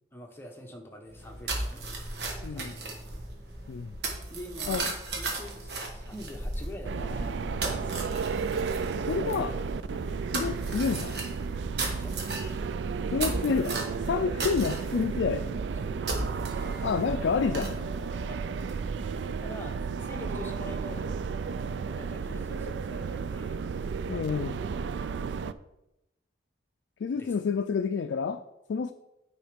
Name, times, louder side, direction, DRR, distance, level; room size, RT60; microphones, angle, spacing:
voice 1, 0.1-1.9 2.5-3.1 4.3-4.9 5.2-7.4 9.2-10.1 11.9-12.2 15.7-15.9 18.3-18.6 19.4-21.1 22.0-23.6 27.2-27.3, equal, 15° left, 2 dB, 0.9 m, -45 dB
sound 1, 1.1-19.0, right 2 dB, 65° right, 1.4 m, -36 dB
voice 2, 2.4-2.7 3.7-4.0 4.7-4.9 9.1-9.5 10.3-11.1 13.1-13.8 14.1-15.5 16.8-17.8 24.1-24.6 27.0-28.4 28.7-28.9, left 5 dB, 85° left, 8 dB, 0.4 m, -29 dB
sound 2, 6.8-25.5, right 5 dB, 80° right, 0.3 m, -33 dB
9.2 x 3.9 x 5.1 m, 0.90 s
head